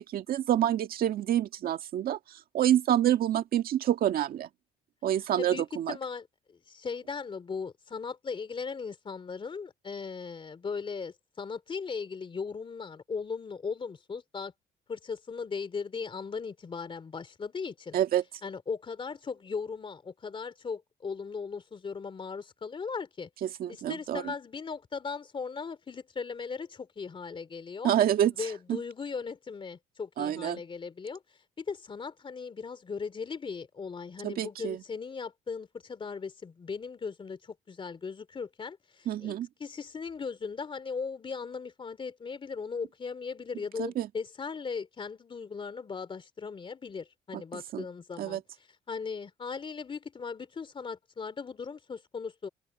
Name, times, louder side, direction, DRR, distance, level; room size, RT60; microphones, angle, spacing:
voice 1, 0.0-2.2 2.5-4.5 5.0-6.0 17.9-18.2 23.4-24.3 27.8-28.3 28.7-28.8 30.2-30.6 34.2-34.8 39.0-39.5 43.8-44.1 47.3-47.4 47.7-47.9 48.2-48.4, right 11 dB, 60° right, 1.8 m, -27 dB
voice 2, 5.4-14.5 14.9-18.0 18.4-23.3 23.7-27.9 28.4-31.2 31.6-39.3 39.6-52.5, left 5 dB, 30° left, 2.8 m, -38 dB
cardioid pair, 110°, 17 cm